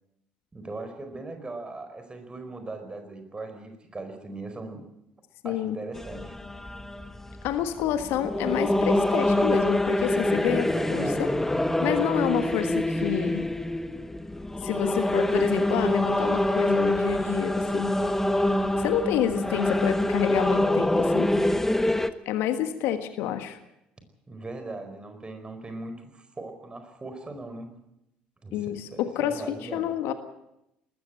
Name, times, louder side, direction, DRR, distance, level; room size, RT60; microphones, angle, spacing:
voice 1, 0.5-4.8 5.4-6.3 10.7-11.4 24.3-27.7 28.4-29.8, right 2 dB, 20° right, 7 dB, 4.7 m, -39 dB
voice 2, 5.4-5.8 7.4-11.3 11.8-13.4 14.6-17.9 18.8-21.3 22.2-23.6 28.5-30.1, left 10 dB, 60° left, 10 dB, 1.5 m, -28 dB
sound 1, 6.0-22.1, left 1 dB, 10° left, 1.3 m, -25 dB
19.5 x 15.0 x 9.0 m, 0.86 s
figure-of-eight pair, 55°, 4 cm